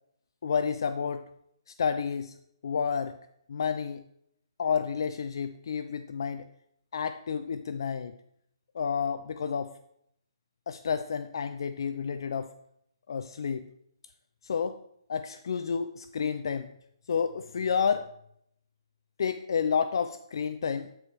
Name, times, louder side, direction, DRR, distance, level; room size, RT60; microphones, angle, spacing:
voice 1, 0.4-1.2 1.8-2.3 2.6-3.1 3.5-4.0 4.6-6.5 6.9-8.2 8.7-9.7 10.7-12.5 13.1-13.7 14.4-14.8 15.1-16.7 17.1-18.1 19.2-20.9, left 6 dB, 55° left, 10 dB, 0.4 m, -30 dB
10.5 x 4.6 x 3.4 m, 0.73 s
hypercardioid pair, 160°, 3 cm